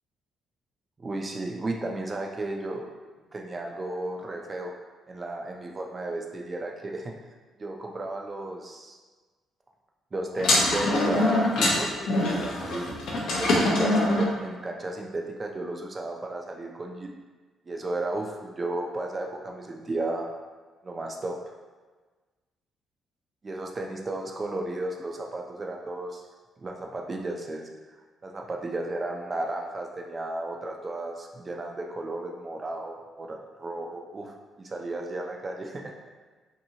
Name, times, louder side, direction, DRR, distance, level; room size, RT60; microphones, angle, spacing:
voice 1, 1.0-2.9 3.3-4.7 5.1-7.1 7.6-9.0 10.1-11.9 12.3-12.9 13.4-17.1 17.7-20.3 20.8-21.4 23.4-26.2 26.6-27.7 28.2-35.9, right 2 dB, 25° right, 1 dB, 0.4 m, -34 dB
sound 1, 10.4-14.3, left 1 dB, 80° left, 0.6 m, -24 dB
2.8 x 2.6 x 2.7 m, 1.3 s
cardioid pair, 115°, 0 cm